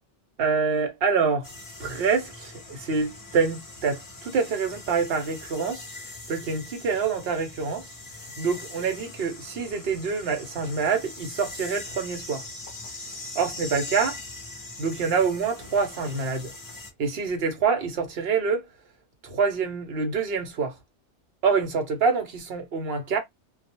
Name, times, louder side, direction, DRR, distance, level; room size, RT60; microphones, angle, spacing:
voice 1, 0.4-1.5 1.8-5.9 6.3-7.9 8.4-12.5 13.3-14.2 14.8-16.5 17.0-18.6 19.2-20.8 21.4-23.2, right 5 dB, 60° right, 0.9 m, -26 dB
sound 1, 1.4-16.9, left 2 dB, 25° left, 0.4 m, -41 dB
2.3 x 2.2 x 2.8 m
omnidirectional pair, 1.2 m